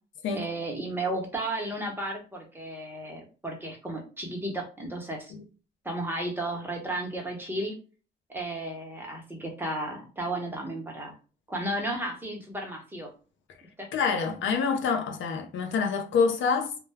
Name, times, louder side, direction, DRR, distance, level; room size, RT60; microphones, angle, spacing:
voice 1, 0.3-5.3 5.8-7.7 8.3-11.2 11.5-13.1 13.8-13.9, right 1 dB, 10° right, 0.9 m, -33 dB
voice 2, 13.9-16.8, left 5 dB, 75° left, 0.6 m, -26 dB
2.2 x 2.2 x 3.3 m
cardioid pair, 90°, 20 cm